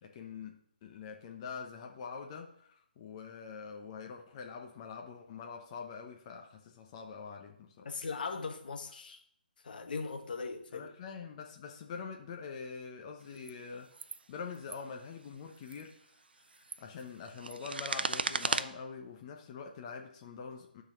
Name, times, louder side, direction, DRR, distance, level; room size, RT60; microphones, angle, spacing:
voice 1, 0.0-8.0 10.7-16.1 16.4-20.8, left 5 dB, 30° left, 0.9 m, -45 dB
voice 2, 7.8-9.2 9.6-10.9, left 4 dB, 60° left, 1.2 m, -39 dB
sound 1, 13.4-13.5 13.9-14.2 14.5-14.8 15.6-15.8 16.4-18.6, right 4 dB, 75° right, 0.6 m, -35 dB
12.0 x 4.0 x 6.3 m
hypercardioid pair, 150°, 5 cm